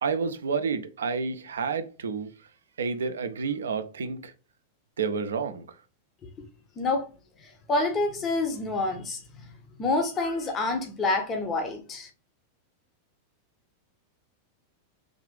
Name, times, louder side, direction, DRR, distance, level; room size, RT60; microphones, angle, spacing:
voice 1, 0.0-2.3 2.8-4.3 5.0-5.6, right 5 dB, 65° right, 0.4 m, -29 dB
voice 2, 6.8-7.1 7.4-12.1, left 3 dB, 25° left, 0.7 m, -28 dB
3.4 x 2.4 x 3.6 m
figure-of-eight pair, 90°, 0 cm